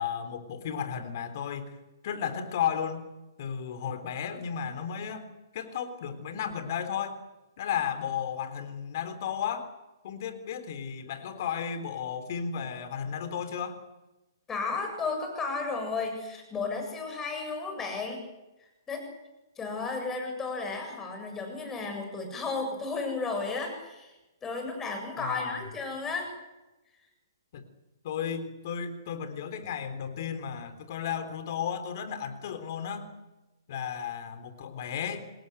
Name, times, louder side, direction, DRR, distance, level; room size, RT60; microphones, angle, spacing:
voice 1, 0.0-1.8 2.0-3.1 3.4-7.2 7.6-9.7 10.0-13.8 25.2-25.6 27.5-27.7 28.0-33.1 33.7-35.3, left 8 dB, 50° left, 10 dB, 3.6 m, -34 dB
voice 2, 14.5-18.2 18.9-19.1 19.6-24.1 24.4-26.3, left 4 dB, 15° left, 4 dB, 7.6 m, -33 dB
26.0 x 20.5 x 8.2 m, 1.0 s
figure-of-eight pair, 125°, 2 cm